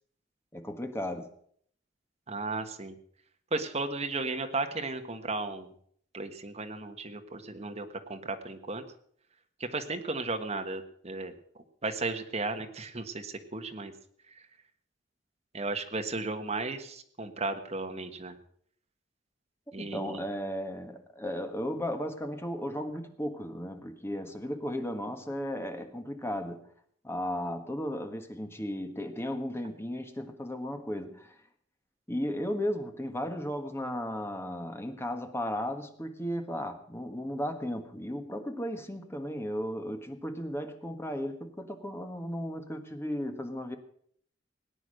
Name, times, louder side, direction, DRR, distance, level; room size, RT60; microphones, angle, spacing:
voice 1, 0.5-1.3 19.8-26.7 27.0-31.4 32.1-43.8, equal, 15° left, 6 dB, 1.5 m, -35 dB
voice 2, 2.3-2.9 3.5-5.7 6.1-8.8 9.6-11.3 11.8-13.9 15.5-18.4 19.7-20.2, right 3 dB, 35° right, 6 dB, 1.5 m, -35 dB
18.0 x 9.6 x 6.5 m, 0.62 s
head